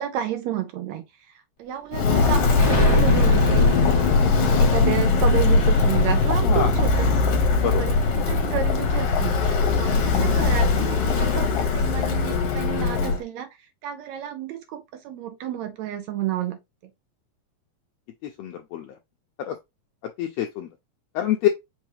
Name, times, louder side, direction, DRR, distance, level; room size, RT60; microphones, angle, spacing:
voice 1, 0.0-3.8 4.1-7.2 7.6-13.5 13.8-16.6, right 10 dB, 75° right, 1.8 m, -31 dB
Walk footsteps, 1.9-13.2, left 4 dB, 60° left, 1.9 m, -20 dB
Explosion, 2.6-7.4, left 2 dB, 20° left, 0.9 m, -27 dB
voice 2, 18.4-18.9 19.5-19.6 20.2-20.7 21.1-21.5, left 11 dB, 80° left, 1.5 m, -25 dB
5.4 x 3.3 x 3.0 m
omnidirectional pair, 3.6 m